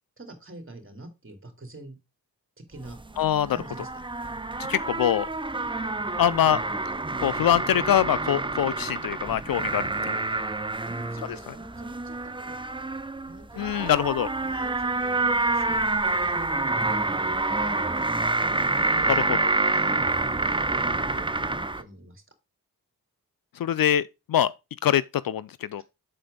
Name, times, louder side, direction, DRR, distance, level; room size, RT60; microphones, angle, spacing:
voice 1, 0.2-2.0 2.7-3.0 3.5-4.0 10.9-12.7 13.3-13.9 14.4-15.8 16.2-18.0 18.5-19.2 19.7-22.2 25.8-25.9, right 2 dB, 35° right, 2.6 m, -45 dB
sound 1, 2.8-21.8, right 2 dB, 15° right, 0.6 m, -27 dB
voice 2, 3.2-3.6 4.7-5.3 6.2-6.6 7.2-10.2 13.6-14.3 23.6-24.5 24.8-25.8, left 10 dB, 65° left, 0.5 m, -24 dB
7.7 x 4.2 x 5.1 m
cardioid pair, 65°, 37 cm